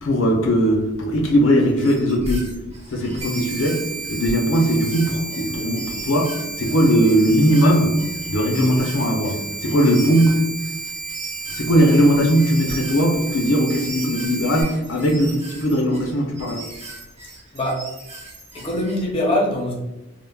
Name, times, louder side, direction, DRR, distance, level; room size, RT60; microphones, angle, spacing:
voice 1, 0.0-2.5 2.9-7.9 8.3-10.4 11.5-16.6, equal, 70° left, 1 dB, 0.5 m, -19 dB
sound 1, 1.7-19.0, right 2 dB, 30° right, 0.6 m, -40 dB
sound 2, 3.2-14.6, right 3 dB, 75° right, 0.6 m, -32 dB
voice 2, 18.5-19.7, left 1 dB, 30° left, -2 dB, 0.6 m, -22 dB
3.2 x 2.0 x 2.3 m, 0.95 s
head